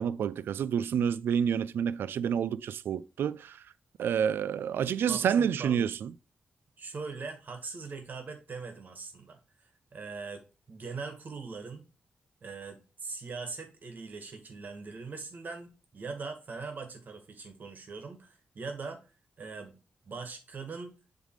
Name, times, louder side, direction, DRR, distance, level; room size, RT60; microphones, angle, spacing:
voice 1, 0.0-3.6 4.0-6.1, right 8 dB, 85° right, 0.4 m, -29 dB
voice 2, 5.1-5.9 6.8-11.8 12.4-19.0 19.4-19.8 20.0-20.9, right 4 dB, 55° right, 1.9 m, -41 dB
7.4 x 3.6 x 4.7 m
cardioid pair, 80°, 4 cm